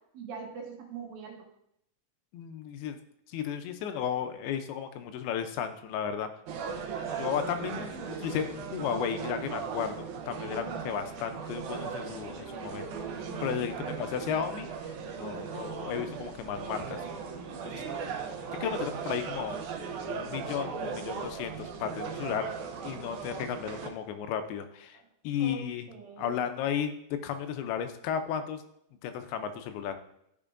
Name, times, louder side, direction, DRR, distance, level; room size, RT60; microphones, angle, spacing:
voice 1, 0.1-1.5 13.9-14.1 24.9-25.0 25.4-26.4, right 5 dB, 75° right, 0 dB, 2.8 m, -43 dB
voice 2, 2.3-3.0 3.3-6.3 7.1-7.9 8.2-17.0 17.6-17.8 18.6-19.6 20.1-22.5 22.8-25.0 25.2-25.9 26.2-26.9 27.2-28.6 29.0-30.0, left 8 dB, 85° left, 8 dB, 2.5 m, -34 dB
sound 1, 6.5-23.9, right 6 dB, 90° right, 1.7 m, -37 dB
12.0 x 4.5 x 2.5 m, 0.77 s
omnidirectional pair, 4.4 m